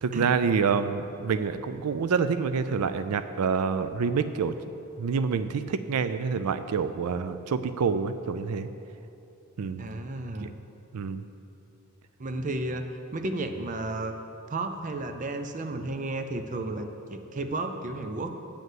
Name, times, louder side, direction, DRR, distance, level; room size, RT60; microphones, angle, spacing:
voice 1, 0.0-4.5 5.0-8.7 9.6-10.0 10.4-10.5 10.9-11.2, right 5 dB, 90° right, 11 dB, 0.4 m, -27 dB
voice 2, 9.8-10.5 12.2-14.1 14.5-18.3, right 2 dB, 35° right, 7 dB, 0.5 m, -33 dB
8.6 x 5.4 x 7.7 m, 2.8 s
head